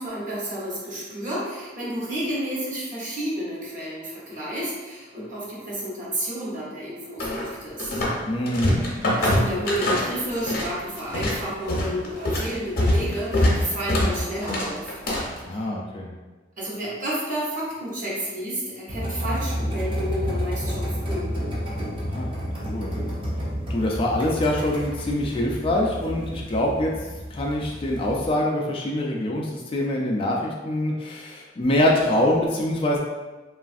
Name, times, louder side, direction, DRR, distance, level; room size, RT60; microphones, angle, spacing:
voice 1, 0.0-8.0 9.2-15.0 15.5-15.7 16.6-21.3, equal, 45° right, -7 dB, 1.0 m, -31 dB
sound 1, 7.2-8.2 8.5-10.7 11.0-15.4, left 1 dB, 55° left, 0.7 m, -23 dB
voice 2, 8.2-8.8 15.4-16.1 22.1-22.3 22.7-23.0 23.7-26.9 27.3-33.0, left 1 dB, 30° left, -1 dB, 0.3 m, -24 dB
sound 2, 18.9-28.3, equal, 25° right, 0.5 m, -30 dB
3.1 x 2.4 x 2.5 m, 1.2 s
head